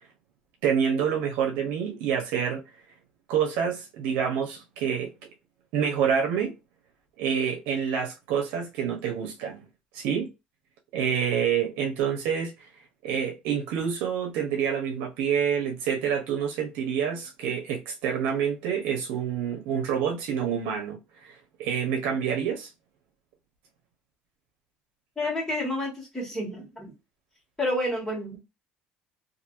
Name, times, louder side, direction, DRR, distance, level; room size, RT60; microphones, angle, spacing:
voice 1, 0.6-2.6 3.3-5.1 5.7-6.5 7.2-9.6 9.9-10.3 10.9-12.7 13.0-22.7, right 7 dB, 85° right, 0.8 m, -27 dB
voice 2, 25.2-26.9 27.6-28.3, left 1 dB, 10° left, 1.6 m, -29 dB
2.9 x 2.6 x 2.5 m
cardioid pair, 115°, 3 cm